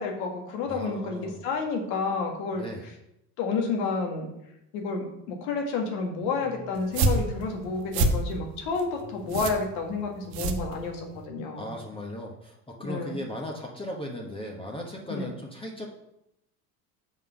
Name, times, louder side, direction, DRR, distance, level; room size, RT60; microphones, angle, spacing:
voice 1, 0.0-2.6 3.4-4.3 4.7-11.7 12.8-13.2 15.1-15.3, left 4 dB, 60° left, 2 dB, 2.1 m, -30 dB
voice 2, 0.7-1.4 2.5-2.9 6.3-6.7 11.6-15.9, equal, 10° left, -1 dB, 1.4 m, -37 dB
sound 1, 6.8-11.3, right 2 dB, 55° right, 1.3 m, -28 dB
5.9 x 5.3 x 6.4 m, 0.83 s
figure-of-eight pair, 70°, 47 cm